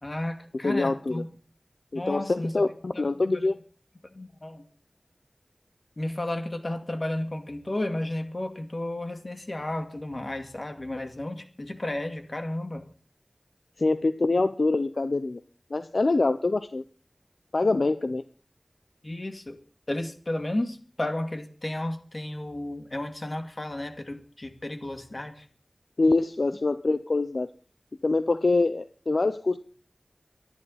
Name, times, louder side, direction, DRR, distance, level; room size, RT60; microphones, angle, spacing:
voice 1, 0.0-1.3 1.9-2.5 2.9-3.5 4.1-4.6 6.0-12.8 19.0-19.6 19.9-25.3, left 1 dB, 50° left, 6 dB, 2.4 m, -33 dB
voice 2, 0.6-1.2 1.9-3.6 13.8-15.4 15.7-16.8 17.5-18.2 26.0-27.5 28.0-29.6, left 3 dB, 80° left, 11 dB, 0.6 m, -25 dB
24.5 x 11.0 x 4.2 m, 0.40 s
wide cardioid pair, 50°, 0 cm